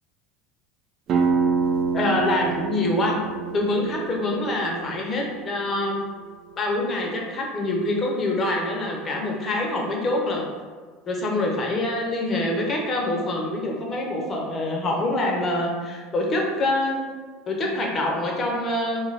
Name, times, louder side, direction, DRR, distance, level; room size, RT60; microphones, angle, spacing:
sound 1, 1.1-6.5, right 5 dB, 45° right, 0.3 m, -27 dB
voice 1, 1.9-3.2 3.5-6.0 6.6-10.5 11.1-17.0 17.5-19.1, left 1 dB, 35° left, -1 dB, 0.7 m, -25 dB
2.4 x 2.2 x 3.2 m, 1.5 s
hypercardioid pair, 75°, 0 cm